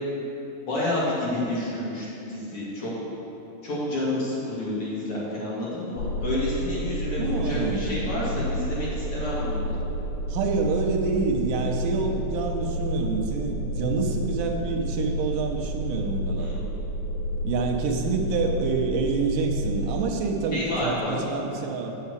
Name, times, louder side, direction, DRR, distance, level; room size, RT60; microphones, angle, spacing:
voice 1, 0.7-2.9 3.6-9.8 16.4-16.6 20.5-21.1, left 1 dB, 45° left, -8 dB, 2.7 m, -29 dB
sound 1, 6.0-20.0, equal, 90° left, 1.4 m, -30 dB
voice 2, 7.2-8.0 10.3-16.5 17.4-21.9, right 4 dB, 85° right, 2 dB, 2.5 m, -27 dB
8.5 x 5.7 x 8.0 m, 3.0 s
omnidirectional pair, 3.7 m